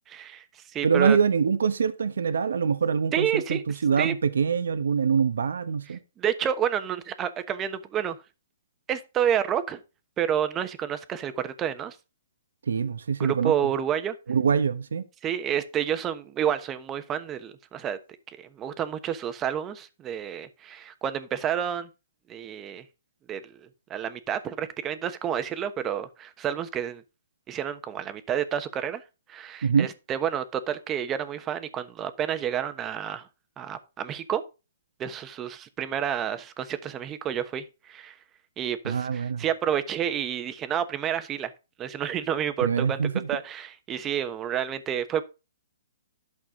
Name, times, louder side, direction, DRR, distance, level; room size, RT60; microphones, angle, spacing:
voice 1, 0.1-1.2 3.1-3.6 4.0-4.1 6.2-8.2 8.9-9.8 10.2-12.0 13.2-14.1 15.2-18.0 18.3-21.9 22.3-22.8 23.3-27.0 27.5-29.0 29.3-33.3 33.6-34.4 35.0-38.2 38.6-41.5 41.8-43.0 43.3-45.2, right 9 dB, 20° right, 1.1 m, -29 dB
voice 2, 0.8-6.0 12.7-13.5 14.3-15.0 29.6-29.9 38.8-39.4 42.6-43.3, right 6 dB, 80° right, 1.0 m, -24 dB
11.5 x 6.1 x 3.7 m
hypercardioid pair, 145°, 0 cm